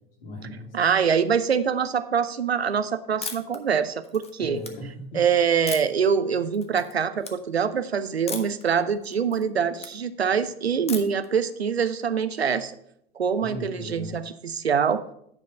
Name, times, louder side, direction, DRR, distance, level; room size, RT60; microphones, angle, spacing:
voice 1, 0.2-0.7 4.4-5.3 13.4-14.1, left 1 dB, 65° left, -1 dB, 2.8 m, -37 dB
voice 2, 0.7-4.6 5.1-12.7 13.2-15.0, right 7 dB, 90° right, 13 dB, 0.6 m, -24 dB
sound 1, 3.2-3.6 4.0-4.7 5.7-6.1 6.5-6.9 7.2-7.3 8.3-8.6 9.0-9.9 10.9-11.3, left 6 dB, 20° left, 1.0 m, -36 dB
9.5 x 5.1 x 5.3 m, 0.72 s
figure-of-eight pair, 90°, 30 cm